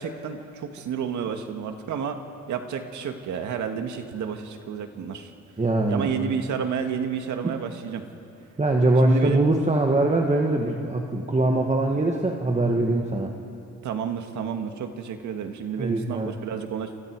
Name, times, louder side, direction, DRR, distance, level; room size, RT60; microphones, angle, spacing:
voice 1, 0.0-2.2 2.5-5.3 5.9-8.0 9.0-9.5 13.8-16.9, right 7 dB, 75° right, 6 dB, 2.0 m, -30 dB
voice 2, 5.6-6.3 8.6-13.3 15.8-16.3, right 2 dB, 25° right, 1 dB, 1.9 m, -22 dB
30.0 x 27.5 x 4.9 m, 2.9 s
cardioid pair, 90°, 30 cm